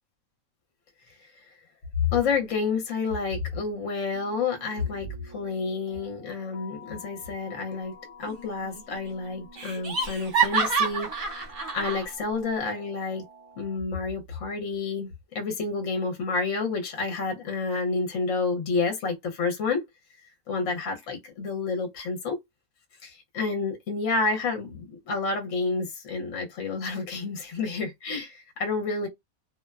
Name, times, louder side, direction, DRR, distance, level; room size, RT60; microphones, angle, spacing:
voice 1, 2.1-7.9 8.2-11.1 11.7-13.2 13.6-15.1 15.3-19.8 20.5-22.4 23.0-29.1, left 4 dB, 60° left, 1.0 m, -29 dB
sound 1, 4.1-13.8, left 1 dB, 60° right, 1.1 m, -49 dB
Laughter, 8.3-8.8 9.1-9.2 9.6-12.0, right 5 dB, 45° right, 0.8 m, -27 dB
2.7 x 2.1 x 2.3 m
omnidirectional pair, 1.6 m